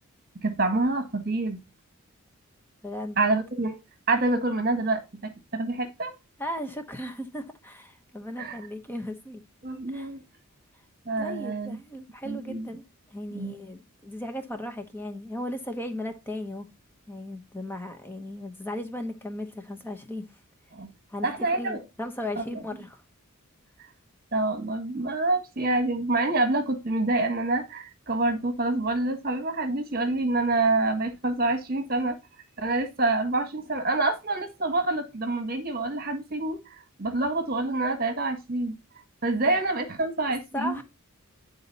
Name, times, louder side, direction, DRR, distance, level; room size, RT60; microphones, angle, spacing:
voice 1, 0.3-1.6 3.2-3.8 4.1-6.1 8.4-8.6 9.6-10.2 11.0-11.8 12.2-12.7 13.3-13.6 20.7-20.9 21.2-21.8 24.3-32.2 32.6-36.6 37.0-38.8 39.2-40.7, right 2 dB, 40° right, 1.5 m, -27 dB
voice 2, 2.8-3.2 6.4-9.4 9.9-10.1 11.2-16.7 17.1-20.4 21.1-23.0 39.4-39.6 40.5-40.8, left 1 dB, 10° left, 0.9 m, -36 dB
9.9 x 4.1 x 4.0 m
head